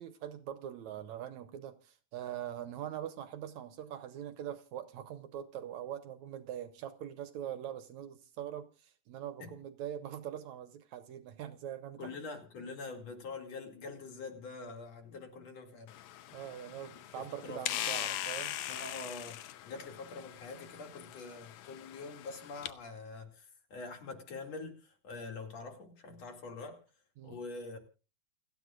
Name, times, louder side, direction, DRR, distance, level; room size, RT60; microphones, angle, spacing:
voice 1, 0.0-12.1 16.3-18.6 27.2-27.4, right 10 dB, 70° right, 2.0 m, -43 dB
voice 2, 12.0-16.0 17.4-17.6 18.7-26.8 27.2-27.8, left 3 dB, 55° left, 3.5 m, -45 dB
sound 1, 15.9-22.7, left 12 dB, 75° left, 2.0 m, -41 dB
29.0 x 9.9 x 2.5 m
omnidirectional pair, 3.7 m